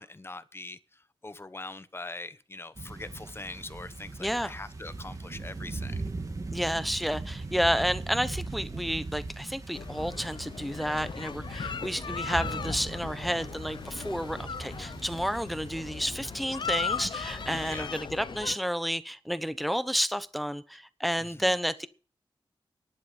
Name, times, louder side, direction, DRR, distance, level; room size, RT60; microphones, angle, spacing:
voice 1, 0.0-6.1 17.6-17.9 21.2-21.6, left 2 dB, 25° left, 1.0 m, -42 dB
sound 1, 2.8-17.9, right 3 dB, 40° right, 2.0 m, -40 dB
voice 2, 4.2-4.5 6.5-21.9, equal, ahead, 0.9 m, -31 dB
Kids Playing In Park in Springtime, 9.7-18.6, left 6 dB, 65° left, 0.5 m, -38 dB
12.0 x 11.0 x 5.5 m
wide cardioid pair, 105°, 9 cm